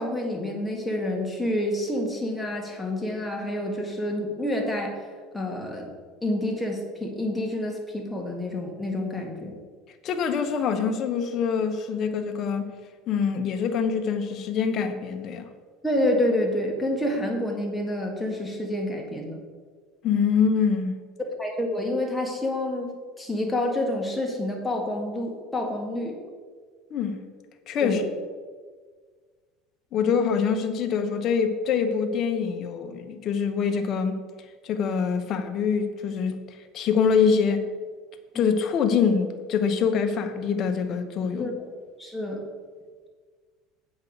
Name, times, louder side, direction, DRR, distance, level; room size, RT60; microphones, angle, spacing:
voice 1, 0.0-4.9 5.3-5.9 6.2-9.6 15.8-19.4 21.4-26.1 27.8-28.0 38.3-38.4 41.4-41.6 42.0-42.4, left 1 dB, 5° left, 0 dB, 1.8 m, -28 dB
voice 2, 10.0-12.7 13.1-15.5 20.0-21.0 26.9-27.2 27.7-28.0 29.9-34.2 34.6-37.7 38.3-41.5, left 6 dB, 40° left, 6 dB, 1.1 m, -25 dB
8.2 x 5.5 x 7.1 m, 1.5 s
supercardioid pair, 135°, 0 cm